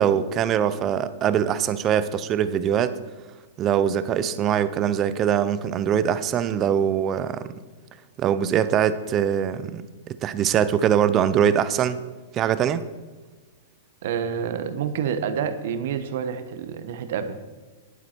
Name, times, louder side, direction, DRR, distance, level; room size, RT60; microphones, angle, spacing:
voice 1, 0.0-3.0 3.6-7.5 8.2-9.8 10.1-12.0 12.3-12.8, right 9 dB, 20° right, 14 dB, 0.5 m, -22 dB
voice 2, 14.0-17.3, right 7 dB, 55° right, 10 dB, 1.0 m, -28 dB
11.0 x 9.4 x 4.4 m, 1.3 s
supercardioid pair, 170°, 0 cm